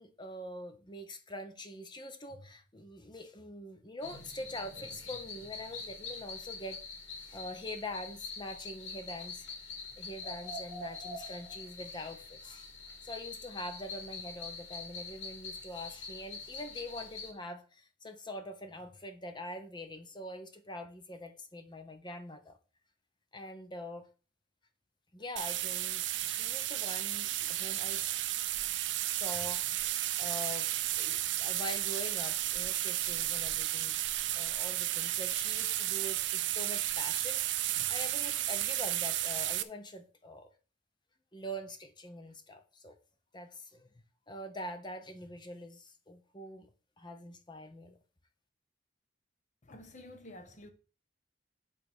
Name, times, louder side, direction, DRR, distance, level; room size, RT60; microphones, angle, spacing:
voice 1, 0.0-6.8 7.2-9.5 10.0-12.7 13.0-22.6 23.3-24.1 25.1-28.0 29.1-34.0 34.4-40.5 41.3-43.0 43.3-43.9 44.3-46.7 47.0-48.0, left 1 dB, 25° left, 1.0 m, -44 dB
sound 1, 4.0-17.3, left 4 dB, 80° left, 2.5 m, -44 dB
sound 2, 25.4-39.6, right 14 dB, 65° right, 0.5 m, -33 dB
voice 2, 49.6-50.7, left 1 dB, 40° left, 1.3 m, -50 dB
8.5 x 3.5 x 6.2 m
head